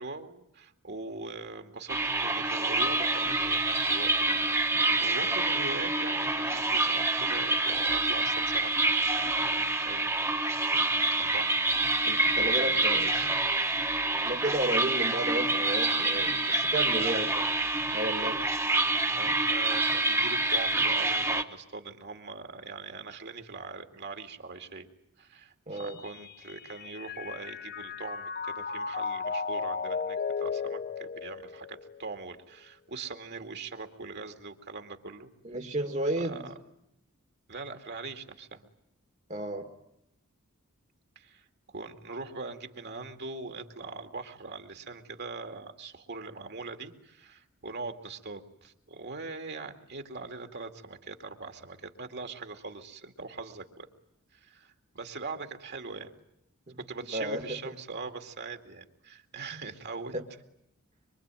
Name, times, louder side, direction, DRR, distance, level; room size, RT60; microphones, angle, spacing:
voice 1, 0.0-8.7 9.0-10.1 11.2-11.7 12.3-13.3 16.9-17.5 18.1-18.3 19.2-24.9 25.2-35.3 36.2-36.5 37.5-38.7 41.2-41.5 41.7-53.9 54.3-56.1 56.8-60.1, right 3 dB, 50° right, 6 dB, 2.4 m, -41 dB
sound 1, 1.9-21.4, right 2 dB, 15° right, 1.4 m, -27 dB
voice 2, 12.0-13.1 14.1-17.3 17.9-18.4 25.7-26.0 35.4-36.4 39.3-39.7 56.7-56.8 57.1-57.6 59.5-59.6 60.1-60.2, right 1 dB, 35° right, 4 dB, 1.9 m, -32 dB
Mallet percussion, 25.8-32.2, left 5 dB, 45° left, 1.0 m, -35 dB
25.0 x 24.5 x 9.1 m, 0.80 s
head